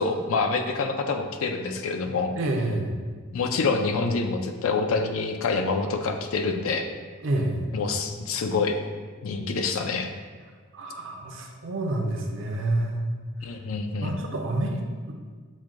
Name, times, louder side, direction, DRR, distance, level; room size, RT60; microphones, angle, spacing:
voice 1, 0.0-2.3 3.3-6.9 7.7-8.8 9.2-10.1 13.4-14.1, left 4 dB, 70° left, 6 dB, 0.4 m, -26 dB
voice 2, 2.4-3.0 7.2-7.7 10.7-13.0 14.0-15.1, right 1 dB, 60° right, 2 dB, 0.6 m, -28 dB
6.3 x 2.2 x 3.6 m, 1.5 s
head